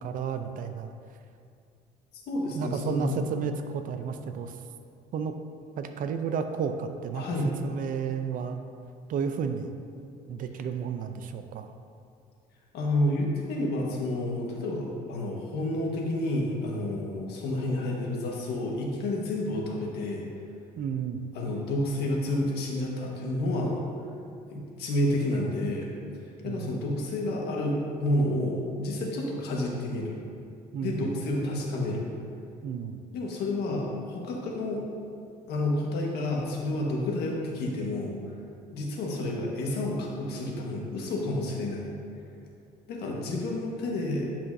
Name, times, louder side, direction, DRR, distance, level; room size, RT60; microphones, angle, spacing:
voice 1, 0.0-0.9 2.5-4.6 5.1-5.3 5.8-7.2 7.6-8.6 9.1-9.7 10.3-11.7 20.8-21.2 26.4-26.7 30.7-31.2 32.6-33.0, right 6 dB, 55° right, 7 dB, 0.5 m, -32 dB
voice 2, 2.3-3.3 7.2-7.5 12.7-20.3 21.3-23.8 24.5-25.9 26.4-30.2 30.8-32.1 33.1-34.8 35.5-38.2 38.7-41.9 42.9-44.3, left 1 dB, 75° left, -2 dB, 1.4 m, -30 dB
10.0 x 5.8 x 2.7 m, 2.4 s
cardioid pair, 110°, 17 cm